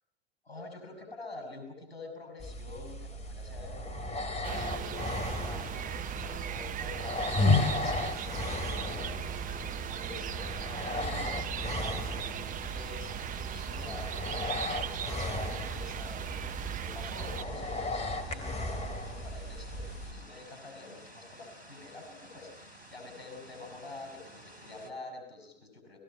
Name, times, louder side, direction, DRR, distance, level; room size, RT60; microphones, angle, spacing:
voice 1, 0.4-10.7 10.9-26.0, left 3 dB, 80° left, 4 dB, 6.0 m, -47 dB
sound 1, 2.4-20.1, left 2 dB, 20° left, 2.9 m, -35 dB
sound 2, 4.4-17.4, right 9 dB, 25° right, 0.8 m, -38 dB
sound 3, 5.4-24.9, equal, 80° right, 3.4 m, -53 dB
29.0 x 20.0 x 5.6 m, 0.87 s
figure-of-eight pair, 75°, 31 cm